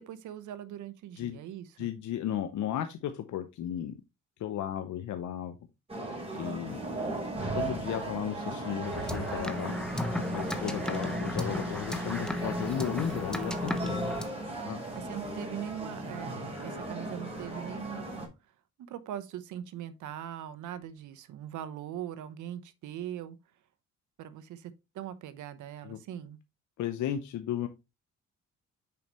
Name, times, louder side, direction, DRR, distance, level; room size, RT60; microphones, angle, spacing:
voice 1, 0.0-1.9 14.9-18.3 18.9-23.4 24.2-26.4, right 11 dB, 75° right, 0.9 m, -41 dB
voice 2, 1.8-4.0 4.4-5.6 6.3-6.8 7.5-9.8 10.3-14.2 14.7-14.8 25.8-26.0 26.8-27.7, left 10 dB, 70° left, 0.8 m, -34 dB
sound 1, 5.9-18.3, right 2 dB, 20° right, 3.9 m, -37 dB
sound 2, 8.8-14.2, left 1 dB, ahead, 1.0 m, -34 dB
6.9 x 5.2 x 3.0 m
cardioid pair, 90°, 30 cm